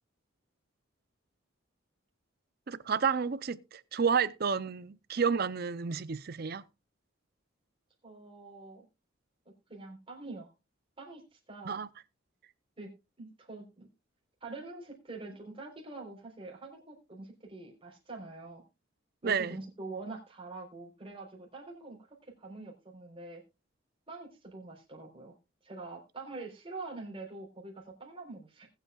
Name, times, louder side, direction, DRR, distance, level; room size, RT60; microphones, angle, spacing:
voice 1, 2.7-6.6 11.7-11.9 19.2-19.6, right 6 dB, 50° right, 0.5 m, -30 dB
voice 2, 8.0-8.8 9.7-10.5 11.0-11.8 12.8-12.9 13.2-13.9 14.4-18.6 19.2-23.4 24.1-25.3 25.6-28.7, right 3 dB, 25° right, 3.8 m, -45 dB
20.0 x 8.1 x 2.3 m
head